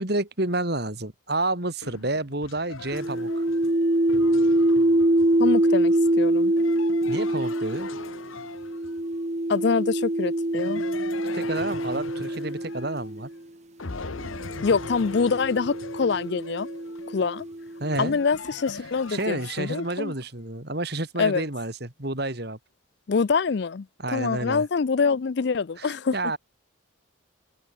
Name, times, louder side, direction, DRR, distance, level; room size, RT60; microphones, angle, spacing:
voice 1, 0.0-3.4 7.0-7.9 11.3-13.3 17.8-18.2 19.1-22.6 24.0-24.6 25.8-26.4, right 2 dB, 50° right, 3.2 m, -30 dB
sound 1, 1.8-9.2 10.5-13.4 13.8-20.3, left 4 dB, 85° left, 1.3 m, -41 dB
sound 2, 2.9-13.3 14.2-17.9, right 1 dB, 35° right, 1.2 m, -25 dB
voice 2, 5.4-6.5 9.5-10.8 14.6-16.7 17.1-17.5 18.0-20.1 21.2-21.4 23.1-23.9 24.1-26.2, left 5 dB, 55° left, 0.4 m, -25 dB
open air
head